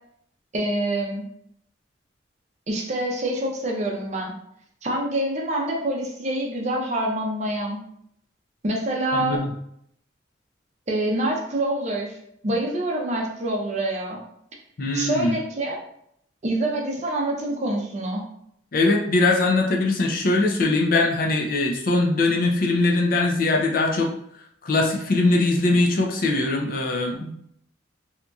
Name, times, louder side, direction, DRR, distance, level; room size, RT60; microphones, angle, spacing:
voice 1, 0.5-1.2 2.7-4.4 4.8-7.8 8.6-9.4 10.9-12.2 12.4-14.2 14.9-15.8 16.4-18.2, right 1 dB, 35° right, -1 dB, 0.5 m, -26 dB
voice 2, 9.1-9.5 14.8-15.4 18.7-24.1 24.6-27.3, left 2 dB, 50° left, 0 dB, 0.4 m, -21 dB
2.8 x 2.6 x 2.3 m, 0.71 s
head